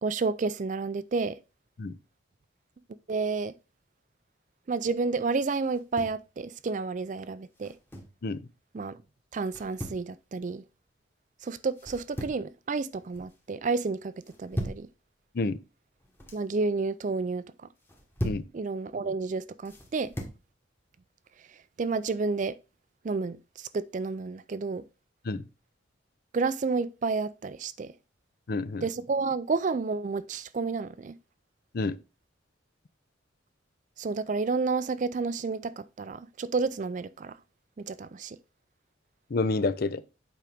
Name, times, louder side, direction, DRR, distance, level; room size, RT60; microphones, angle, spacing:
voice 1, 0.0-1.4 3.1-3.5 4.7-7.7 8.7-9.0 9.3-10.6 11.4-14.1 14.4-14.9 16.3-17.4 18.5-20.1 21.8-22.5 23.0-24.8 26.3-27.9 28.8-31.1 34.0-37.3 37.8-38.4, right 4 dB, 40° right, 0.4 m, -30 dB
sound 1, 5.7-6.2 7.5-8.2 9.5-10.0 11.7-12.5 12.9-13.4 14.2-14.9 15.9-16.4 17.8-18.5 19.6-20.4, equal, 10° left, 1.2 m, -38 dB
voice 2, 28.5-28.8 31.7-32.0 39.3-40.0, left 3 dB, 50° left, 0.5 m, -28 dB
8.3 x 5.1 x 3.5 m
head